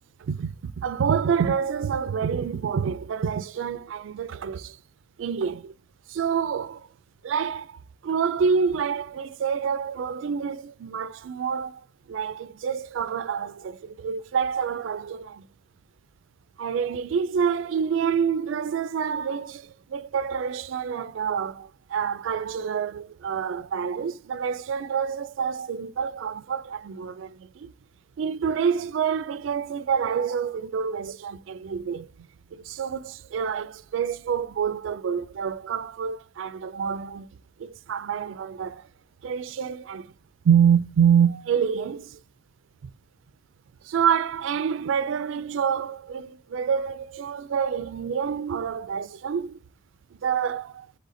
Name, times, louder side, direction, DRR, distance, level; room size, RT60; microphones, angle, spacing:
voice 1, 0.2-4.8 5.2-5.7 6.1-6.9 7.2-11.8 12.1-15.4 16.6-27.7 28.2-37.3 37.6-38.9 39.2-40.1 40.4-42.2 43.8-49.6 50.2-50.9, right 7 dB, 70° right, 0.3 m, -27 dB
4.1 x 3.2 x 3.7 m
head